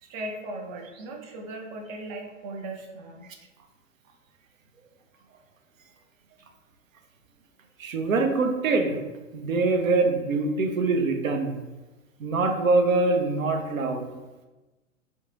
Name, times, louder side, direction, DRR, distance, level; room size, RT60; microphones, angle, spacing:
voice 1, 0.0-3.3 3.6-3.7 5.1-5.2, right 2 dB, 35° right, 1 dB, 0.5 m, -38 dB
voice 2, 7.8-9.0 9.3-11.6 12.2-14.1, right 3 dB, 85° right, 4 dB, 0.5 m, -24 dB
3.0 x 2.1 x 2.8 m, 1.1 s
figure-of-eight pair, 110°, 39 cm